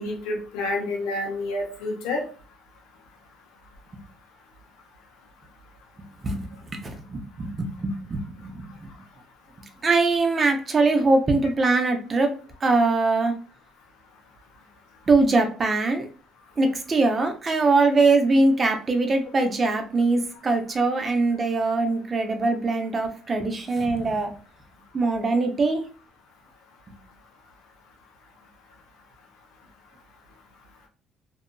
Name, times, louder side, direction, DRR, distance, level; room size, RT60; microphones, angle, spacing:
voice 1, 0.0-2.2, left 2 dB, 90° left, 0 dB, 0.8 m, -28 dB
voice 2, 6.2-8.6 9.8-12.3 12.6-13.3 15.1-16.1 16.6-24.3 24.9-25.8, right 3 dB, 30° right, 5 dB, 0.5 m, -22 dB
2.7 x 2.5 x 2.2 m, 0.38 s
cardioid pair, 110°, 0 cm